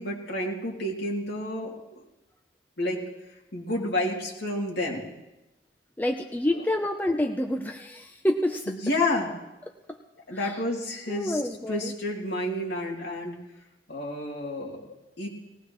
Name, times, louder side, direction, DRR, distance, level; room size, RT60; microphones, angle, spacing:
voice 1, 0.0-2.0 2.8-3.0 3.5-5.0 8.7-9.3 10.3-11.4 11.7-13.4 13.9-15.3, left 1 dB, 65° left, -2 dB, 2.9 m, -30 dB
voice 2, 6.0-8.7 9.9-10.0 10.3-10.6 11.1-11.9, left 1 dB, 10° left, 4 dB, 0.6 m, -28 dB
19.5 x 17.5 x 3.1 m, 0.97 s
head